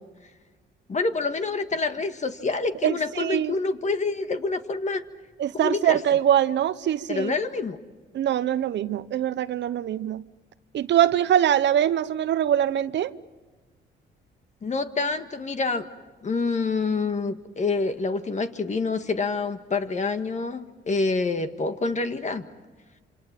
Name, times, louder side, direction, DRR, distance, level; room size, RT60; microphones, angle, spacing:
voice 1, 0.9-5.0 5.5-6.0 7.1-7.8 14.6-15.9 16.2-22.4, left 3 dB, 35° left, 1.7 m, -27 dB
voice 2, 2.8-3.6 5.4-7.3 8.1-10.2 10.7-13.1, right 10 dB, 65° right, 0.8 m, -23 dB
27.5 x 26.0 x 7.5 m
cardioid pair, 90°, 20 cm